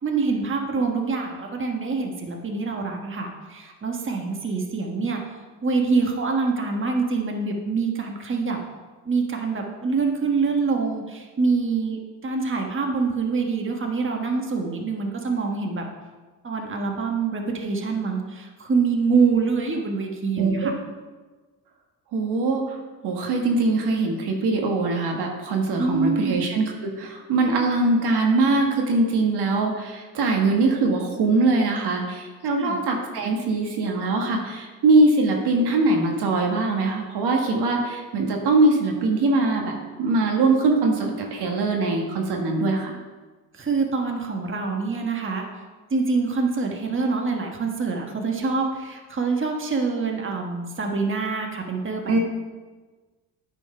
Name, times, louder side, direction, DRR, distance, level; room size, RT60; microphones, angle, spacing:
voice 1, 0.0-5.2 5.6-8.6 9.0-15.8 16.4-20.7 25.8-26.4 32.6-32.8 43.5-45.4 45.9-52.2, right 4 dB, 30° right, 1 dB, 1.4 m, -25 dB
voice 2, 20.4-20.7 22.1-22.8 23.0-42.9 52.1-52.2, right 3 dB, 70° right, 1 dB, 1.5 m, -22 dB
9.1 x 4.5 x 5.5 m, 1.3 s
supercardioid pair, 70°, 42 cm